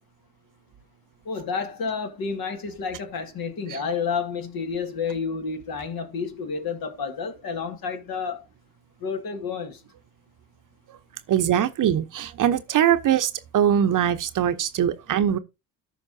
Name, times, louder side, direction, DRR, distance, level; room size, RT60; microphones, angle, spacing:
voice 1, 1.3-8.4 9.0-9.8, left 5 dB, 55° left, 2.1 m, -30 dB
voice 2, 11.3-15.4, right 10 dB, 50° right, 0.9 m, -22 dB
14.0 x 5.3 x 2.7 m
hypercardioid pair, 60°, 42 cm